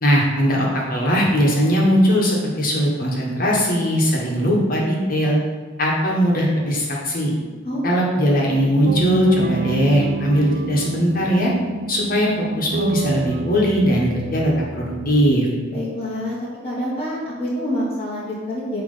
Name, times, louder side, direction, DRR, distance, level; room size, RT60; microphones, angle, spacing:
voice 1, 0.0-5.4 5.8-7.3 7.8-11.5 11.9-15.5, equal, 45° left, -3 dB, 1.5 m, -19 dB
sound 1, 8.9-15.4, right 4 dB, 45° right, 0.3 m, -28 dB
voice 2, 15.7-16.4 16.6-18.8, equal, 30° left, -7 dB, 1.3 m, -26 dB
8.7 x 3.4 x 5.6 m, 1.4 s
head